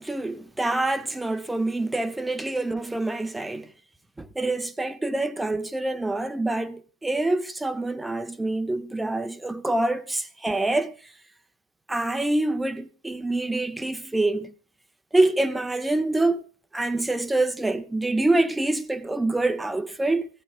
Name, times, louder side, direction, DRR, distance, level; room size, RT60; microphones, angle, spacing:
voice 1, 0.0-3.7 4.2-11.0 11.9-14.5 15.1-16.5 16.7-20.3, right 2 dB, 5° right, 0.6 m, -26 dB
16.5 x 14.0 x 2.4 m
figure-of-eight pair, 90°, 0 cm